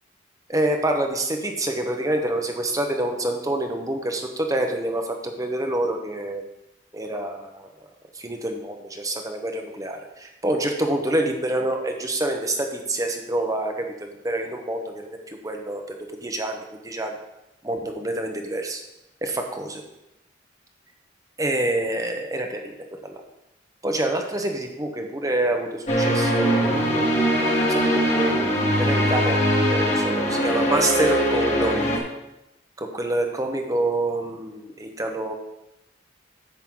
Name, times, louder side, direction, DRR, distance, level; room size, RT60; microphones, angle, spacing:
voice 1, 0.5-6.4 6.9-7.7 8.1-15.8 16.2-17.2 17.6-18.8 19.2-19.8 21.4-22.7 23.0-23.2 23.8-27.1 27.4-28.5 28.8-32.0 32.8-35.3, right 1 dB, 15° right, 3 dB, 1.0 m, -27 dB
sound 1, 25.9-32.0, equal, 35° left, 1.8 m, -21 dB
10.5 x 7.8 x 3.8 m, 0.92 s
head